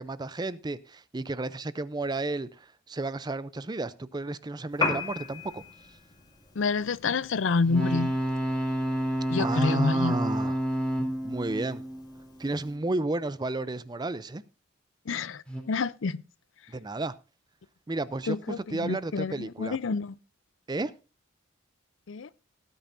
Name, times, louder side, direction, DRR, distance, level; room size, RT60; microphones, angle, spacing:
voice 1, 0.0-5.6 9.4-10.7 11.2-11.8 12.4-14.4 16.7-17.1 17.9-19.8 20.7-20.9, right 2 dB, 20° right, 0.5 m, -32 dB
Piano, 4.7-12.8, left 3 dB, 20° left, 2.1 m, -39 dB
voice 2, 6.6-8.1 9.3-10.2 15.1-16.2 18.3-20.2 22.1-22.3, left 4 dB, 65° left, 0.5 m, -28 dB
sound 1, 7.6-12.7 15.5-15.6, right 1 dB, 5° left, 3.2 m, -30 dB
17.0 x 9.2 x 2.6 m
head